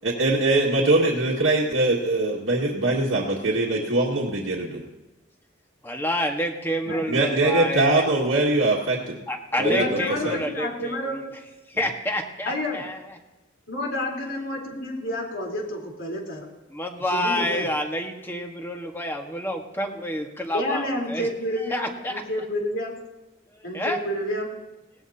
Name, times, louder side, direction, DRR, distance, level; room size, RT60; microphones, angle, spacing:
voice 1, 0.0-4.8 6.9-9.2 9.6-10.0 10.2-10.4, right 2 dB, 80° right, -4 dB, 2.0 m, -22 dB
voice 2, 5.8-8.0 9.3-11.2 11.7-13.0 16.7-21.3 21.7-22.2 23.5-24.0, left 1 dB, 10° left, 2 dB, 1.6 m, -28 dB
voice 3, 9.6-11.2 12.5-12.8 13.7-16.5 17.1-17.7 20.5-23.0 23.6-24.5, left 1 dB, 70° left, -1 dB, 4.0 m, -29 dB
19.0 x 18.5 x 2.9 m, 1.1 s
head